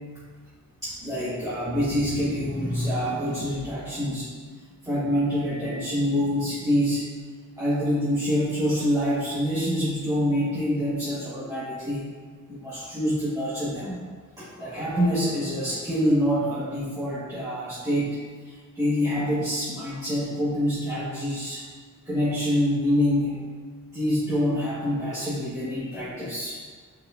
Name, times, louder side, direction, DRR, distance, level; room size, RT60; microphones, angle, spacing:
voice 1, 0.8-4.3 4.8-7.1 7.6-12.1 12.5-14.0 14.4-21.7 22.0-23.4 23.9-26.6, equal, 10° right, -11 dB, 1.5 m, -26 dB
8.4 x 4.8 x 2.6 m, 1.5 s
wide cardioid pair, 135°, 32 cm